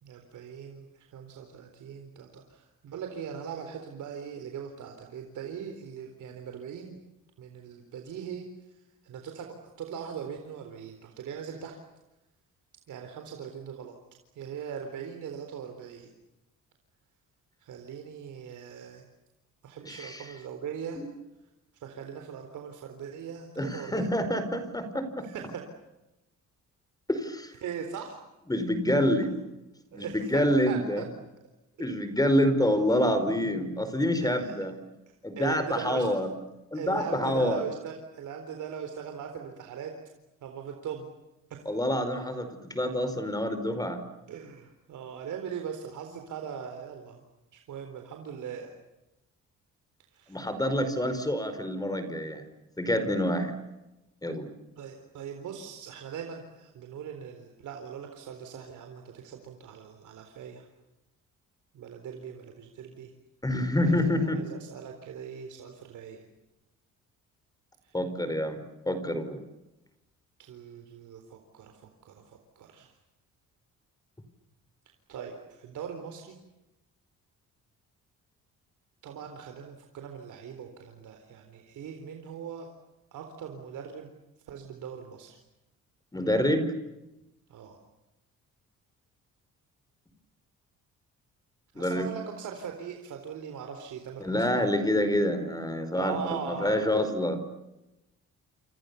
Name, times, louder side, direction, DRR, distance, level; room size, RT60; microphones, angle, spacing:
voice 1, 0.0-7.0 7.4-8.5 9.0-9.5 9.8-11.8 12.9-13.9 14.4-16.1 17.6-19.0 19.6-21.0 21.8-24.1 25.2-25.6 27.6-28.2 29.9-30.4 30.7-31.1 31.8-32.0 34.2-34.5 35.4-36.2 36.7-39.9 40.4-41.1 41.5-41.7 44.3-47.2 47.5-48.7 50.1-50.4 54.8-60.6 61.7-63.1 63.8-66.2 67.8-67.9 70.4-72.9 75.1-76.4 79.0-82.7 83.1-84.1 84.5-85.4 87.5-87.8 91.7-94.6 96.0-97.0, right 7 dB, 75° right, 4 dB, 4.0 m, -40 dB
voice 2, 19.8-20.3 21.0-21.1 23.6-25.3 27.1-27.5 28.5-29.3 29.9-31.0 31.8-34.7 35.2-36.3 36.7-37.6 41.6-44.0 50.3-52.4 52.8-53.5 54.2-54.5 63.4-64.4 67.9-69.4 86.1-86.7 91.7-92.1 94.2-97.4, left 1 dB, 10° left, 10 dB, 4.9 m, -27 dB
29.5 x 28.0 x 7.0 m, 0.98 s
cardioid pair, 90°, 30 cm